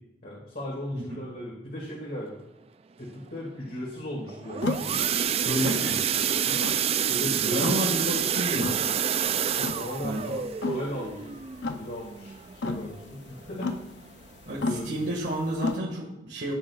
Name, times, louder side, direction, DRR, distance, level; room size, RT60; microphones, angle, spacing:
voice 1, 0.2-2.4 3.0-5.0 5.5-5.8 6.3-6.6 7.1-7.8 9.5-11.3 11.7-13.7 14.5-14.9, left 1 dB, 55° left, -5 dB, 2.3 m, -36 dB
sound 1, 4.3-12.9 13.4-13.6 13.9-14.0 14.5-14.6, right 8 dB, 35° right, 0.3 m, -28 dB
sound 2, 4.6-15.8, left 3 dB, 85° left, 0.6 m, -36 dB
voice 2, 5.4-6.0 7.3-8.8 10.0-10.2 14.5-16.5, equal, 85° right, -4 dB, 1.9 m, -30 dB
14.0 x 9.2 x 2.4 m, 0.88 s
head